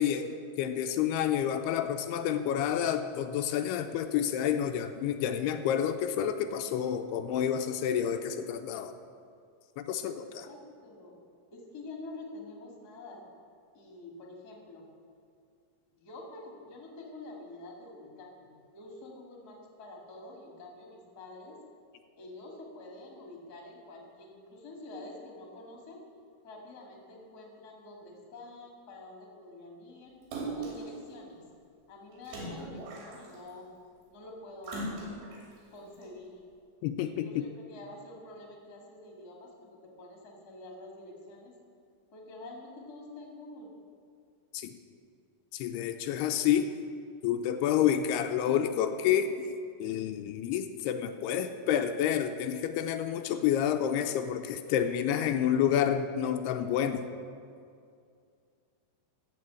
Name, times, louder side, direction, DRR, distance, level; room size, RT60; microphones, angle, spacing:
voice 1, 0.0-8.9 9.8-10.5 36.8-37.4 44.5-44.7 45.5-46.7 47.2-49.5 49.8-57.1, left 9 dB, 85° left, 7 dB, 2.6 m, -29 dB
voice 2, 10.4-11.2 11.5-13.2 13.7-14.9 15.9-21.6 22.1-26.0 26.4-30.1 30.5-31.4 31.9-33.7 34.1-34.9 35.7-36.4 37.0-41.5 42.1-43.7, left 2 dB, 35° left, 0 dB, 1.8 m, -47 dB
Splash splatter, 30.3-30.9 32.3-33.5 34.6-35.4 36.0-36.1, right 2 dB, 90° right, 4.7 m, -38 dB
14.5 x 5.8 x 8.3 m, 2.3 s
omnidirectional pair, 4.7 m